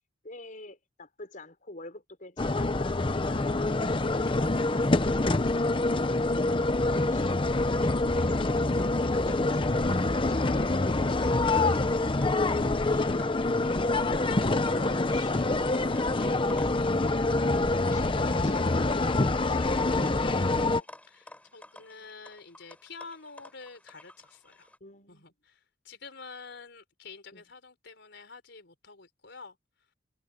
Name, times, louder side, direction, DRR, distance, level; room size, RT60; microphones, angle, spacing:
voice 1, 0.2-3.6 3.9-5.6 6.0-11.5 14.5-15.8 16.8-20.9 24.8-25.3 27.3-27.4, left 2 dB, 45° left, 5.5 m, -47 dB
sound 1, 2.4-20.8, left 2 dB, 25° left, 0.8 m, -26 dB
voice 2, 14.7-16.4 21.0-24.7 25.1-29.6, left 4 dB, 65° left, 4.9 m, -49 dB
sound 2, 15.2-24.8, left 1 dB, 5° left, 7.9 m, -53 dB
head